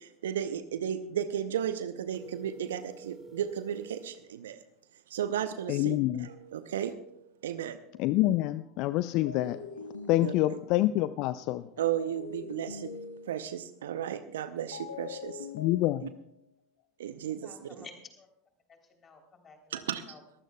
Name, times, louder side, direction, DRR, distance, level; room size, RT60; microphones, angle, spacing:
voice 1, 0.2-4.6 5.1-6.9 7.4-7.8 10.2-10.6 11.8-12.9 13.3-15.3 17.0-17.5 17.8-17.9 19.7-20.0, right 9 dB, 70° right, 12 dB, 0.7 m, -34 dB
sound 1, 2.1-4.2, right 3 dB, 15° right, 2.5 m, -49 dB
voice 2, 5.7-6.3 8.0-9.6 10.1-11.7 15.5-16.1, left 16 dB, 50° left, 15 dB, 0.4 m, -27 dB
sound 2, 7.9-8.2 9.3-11.0 12.0-13.7 14.7-16.4, left 5 dB, 80° left, 1.1 m, -43 dB
voice 3, 17.4-18.3 18.7-20.2, left 4 dB, 30° left, 3 dB, 3.5 m, -52 dB
22.0 x 15.5 x 2.3 m, 0.76 s
figure-of-eight pair, 80°, 0 cm